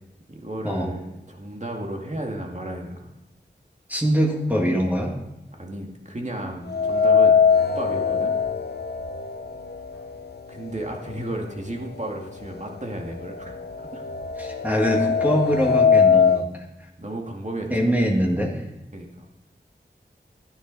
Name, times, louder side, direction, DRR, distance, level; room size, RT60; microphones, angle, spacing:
voice 1, 0.3-3.1 5.5-8.4 10.5-14.1 17.0-17.7 18.9-19.3, right 1 dB, 40° right, 1 dB, 2.1 m, -34 dB
voice 2, 3.9-5.2 14.4-16.6 17.7-18.6, equal, 10° right, -1 dB, 1.8 m, -23 dB
sound 1, 6.7-10.7 11.1-11.2 12.2-12.3 12.6-16.5, left 6 dB, 60° left, 0.6 m, -21 dB
13.0 x 10.0 x 4.0 m, 0.98 s
wide cardioid pair, 55°, 19 cm